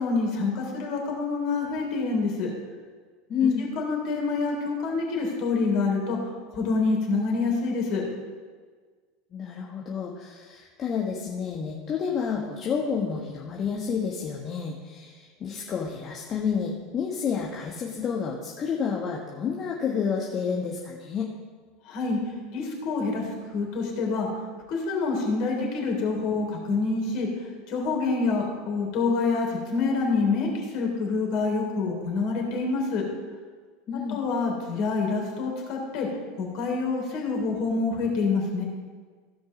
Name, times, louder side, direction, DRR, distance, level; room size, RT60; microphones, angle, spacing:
voice 1, 0.0-2.5 3.4-6.2 6.5-8.0 21.8-22.2 22.5-24.3 24.7-27.3 27.7-33.0 33.9-36.1 36.4-38.6, left 4 dB, 55° left, 0 dB, 3.4 m, -27 dB
voice 2, 3.3-3.7 9.3-21.3 33.9-34.2, left 6 dB, 35° left, -1 dB, 1.4 m, -29 dB
15.5 x 5.3 x 5.2 m, 1.5 s
hypercardioid pair, 80°, 0 cm